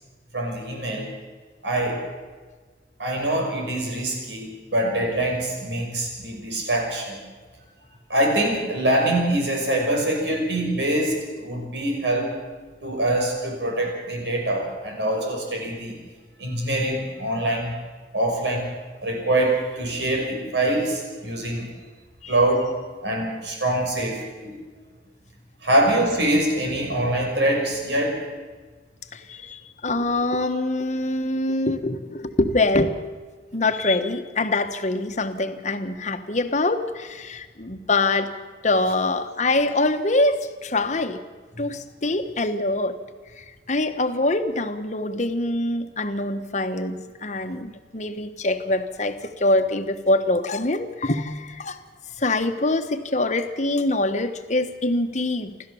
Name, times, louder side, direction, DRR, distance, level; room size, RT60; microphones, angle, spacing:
voice 1, 0.3-1.1 1.6-2.0 3.0-7.2 8.1-12.4 12.8-15.9 16.4-17.8 18.1-18.7 19.0-21.7 22.3-22.7 23.0-24.6 25.6-28.3, right 1 dB, 90° right, 1 dB, 6.0 m, -24 dB
voice 2, 29.1-33.0 33.5-38.4 38.6-41.2 41.6-43.0 43.4-51.8 52.2-55.5, left 2 dB, 40° left, 8 dB, 1.3 m, -24 dB
28.0 x 13.0 x 7.1 m, 1.4 s
head